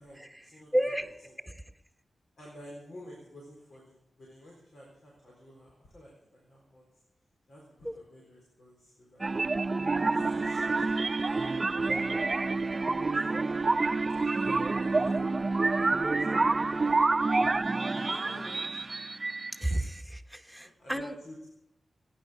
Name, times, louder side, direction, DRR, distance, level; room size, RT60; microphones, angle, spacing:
voice 1, 0.0-0.8 1.2-1.3 2.4-6.9 7.5-9.3 10.1-10.8 11.2-12.6 13.1-13.6 14.2-17.1 17.9-18.9 20.4-21.5, equal, 80° left, -3 dB, 4.2 m, -51 dB
voice 2, 0.7-1.1 1.4-1.5 7.8-7.9 19.6-21.1, right 1 dB, ahead, 5 dB, 1.4 m, -31 dB
sound 1, 9.2-19.8, right 3 dB, 40° right, 0.6 m, -28 dB
17.0 x 10.5 x 6.3 m, 0.86 s
cardioid pair, 65°, 0 cm